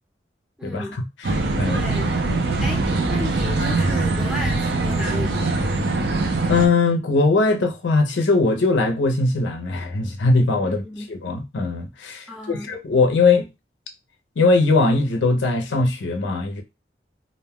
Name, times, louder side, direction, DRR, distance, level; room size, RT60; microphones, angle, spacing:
voice 1, 0.6-1.0 1.7-2.1 2.6-2.8 3.1-5.6 10.6-11.1 12.3-12.7, left 1 dB, 5° right, 0.6 m, -33 dB
sound 1, 1.2-6.7, right 2 dB, 65° right, 0.5 m, -22 dB
voice 2, 6.5-10.8 11.1-13.5 14.4-16.6, left 3 dB, 85° left, 0.5 m, -20 dB
2.5 x 2.2 x 3.4 m
head